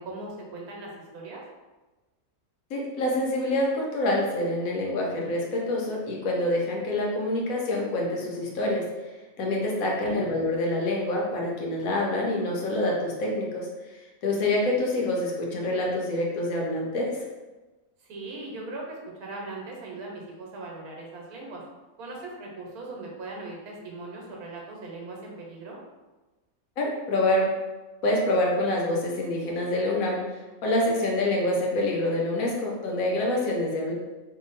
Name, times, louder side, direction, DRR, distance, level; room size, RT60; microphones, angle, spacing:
voice 1, 0.0-1.4 9.7-10.2 18.1-21.6 22.0-25.8, right 2 dB, 85° right, -1 dB, 1.3 m, -39 dB
voice 2, 2.7-8.8 9.4-13.7 14.2-17.1 26.8-27.5 28.0-30.2 30.6-33.9, left 1 dB, 70° left, -1 dB, 1.1 m, -26 dB
2.8 x 2.6 x 3.9 m, 1.2 s
omnidirectional pair, 1.6 m